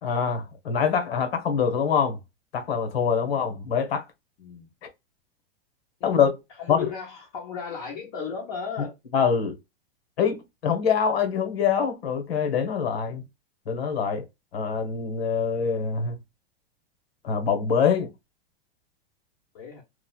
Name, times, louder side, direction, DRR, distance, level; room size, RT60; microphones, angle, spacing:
voice 1, 0.0-2.2 2.5-4.0 6.0-6.3 6.7-6.9 9.1-9.6 10.2-13.2 13.7-14.2 14.5-16.2 17.2-18.1, left 6 dB, 85° left, 1.3 m, -24 dB
voice 2, 6.6-8.9 19.5-19.8, left 6 dB, 30° left, 0.8 m, -35 dB
3.2 x 2.4 x 2.3 m
supercardioid pair, 175°, 30 cm